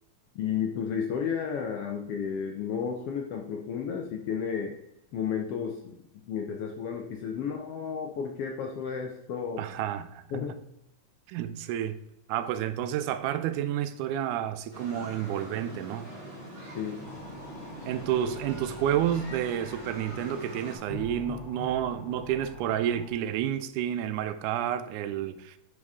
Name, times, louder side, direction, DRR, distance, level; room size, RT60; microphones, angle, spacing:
voice 1, 0.3-4.8 5.1-6.0 6.3-9.6 10.3-10.5 16.7-17.0, left 7 dB, 70° left, 1.4 m, -32 dB
voice 2, 9.6-10.2 11.3-12.0 12.3-16.1 17.9-25.6, right 10 dB, 90° right, 2.1 m, -30 dB
sound 1, 14.7-20.8, equal, 15° right, 3.3 m, -43 dB
sound 2, 17.0-23.1, left 3 dB, 20° left, 1.5 m, -45 dB
9.6 x 5.0 x 3.6 m
omnidirectional pair, 3.4 m